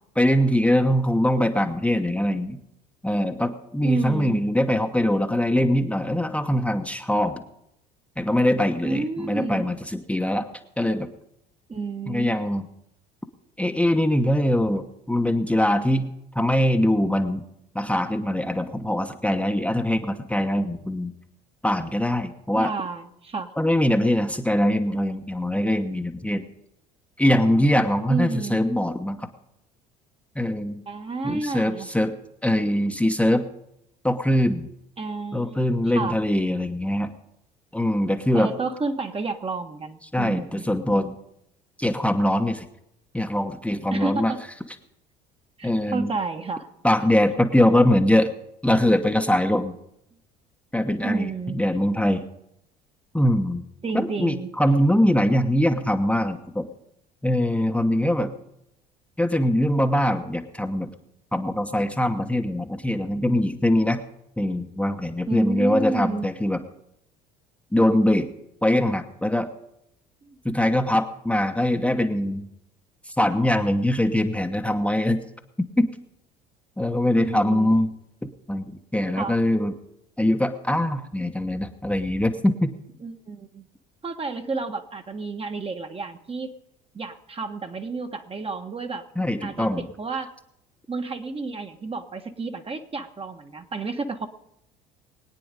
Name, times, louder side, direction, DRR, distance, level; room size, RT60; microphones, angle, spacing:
voice 1, 0.2-2.6 3.0-7.4 8.2-10.5 10.8-11.1 12.1-12.7 13.6-17.4 17.7-21.1 21.6-22.7 23.6-26.4 27.2-29.3 30.3-30.8 31.2-32.1 32.4-33.5 34.0-34.7 35.3-37.1 37.7-38.5 40.1-41.1 41.8-42.6 43.1-44.3 45.6-46.1 46.8-48.3 48.6-49.7 50.7-52.2 53.1-53.6 53.9-56.7 57.2-58.3 59.2-60.9 61.3-64.0 64.4-66.6 67.7-68.3 68.6-69.5 70.4-72.5 73.1-75.2 75.6-75.9 76.8-77.9 78.2-79.7 80.2-82.8 89.2-89.8, left 1 dB, 5° left, 4 dB, 1.1 m, -22 dB
voice 2, 3.8-4.5 8.8-9.7 11.7-12.6 22.5-23.5 28.1-28.6 30.9-31.9 35.0-35.7 35.9-36.2 38.3-40.6 43.9-44.4 45.6-46.7 51.0-51.6 53.8-54.5 65.3-66.3 70.2-70.4 77.2-77.7 79.1-79.4 83.0-83.7 84.0-86.5 86.9-89.1 89.4-90.3 90.9-94.3, right 4 dB, 25° right, 6 dB, 1.4 m, -30 dB
21.5 x 9.2 x 5.2 m, 0.79 s
hypercardioid pair, 65°, 21 cm